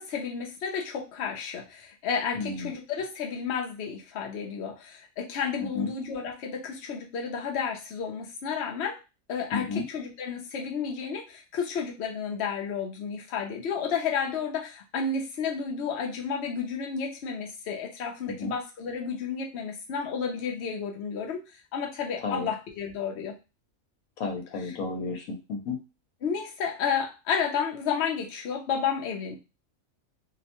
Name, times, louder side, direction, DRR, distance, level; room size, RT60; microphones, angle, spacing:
voice 1, 0.0-9.0 9.3-23.3 24.6-24.8 26.2-29.4, left 6 dB, 60° left, 1 dB, 0.8 m, -31 dB
voice 2, 2.3-2.7 5.7-5.9 9.5-9.8 18.4-18.5 22.2-22.5 24.2-25.8, left 4 dB, 80° left, 3 dB, 1.2 m, -32 dB
2.7 x 2.1 x 2.9 m, 0.28 s
omnidirectional pair, 1.5 m